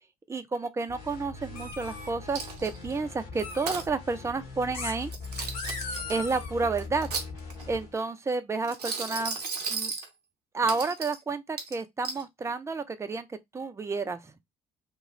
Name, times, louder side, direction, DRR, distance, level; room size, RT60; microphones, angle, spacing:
voice 1, 0.3-5.1 6.1-7.1 7.7-9.4 9.7-9.9 10.5-13.3 13.5-14.2, right 4 dB, 15° right, 0.5 m, -30 dB
sound 1, 0.9-7.9, left 3 dB, 55° left, 1.3 m, -41 dB
sound 2, 1.6-2.1 3.4-3.7 4.7-5.0 5.4-6.5, left 4 dB, 75° left, 0.8 m, -38 dB
Coin (dropping), 2.3-2.9 3.4-3.9 5.0-6.1 6.8-7.7 8.6-10.1 10.7-11.2 11.6-12.2, right 4 dB, 80° right, 0.6 m, -35 dB
2.9 x 2.4 x 3.0 m
figure-of-eight pair, 50°, 20 cm